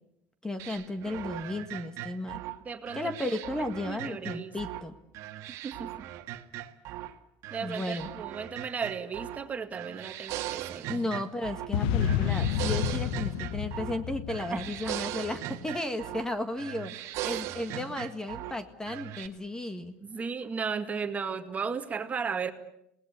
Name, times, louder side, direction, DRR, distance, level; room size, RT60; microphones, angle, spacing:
voice 1, 0.4-2.4 2.9-5.0 7.6-8.1 10.9-19.9, left 2 dB, 10° left, 10 dB, 1.8 m, -34 dB
sound 1, 0.6-4.9 5.1-7.1 7.4-9.5 9.7-11.7 12.0-14.0 14.3-16.3 16.6-18.6 18.9-19.3, right 14 dB, 60° right, 1.6 m, -39 dB
voice 2, 2.6-3.3 3.6-4.6 5.6-5.9 7.5-10.9 14.5-14.7 17.2-17.4 20.0-22.5, right 5 dB, 25° right, 7 dB, 2.0 m, -35 dB
sound 2, 11.7-15.2, left 9 dB, 80° left, 1.2 m, -30 dB
27.5 x 19.5 x 8.4 m, 0.80 s
supercardioid pair, 110°, 6 cm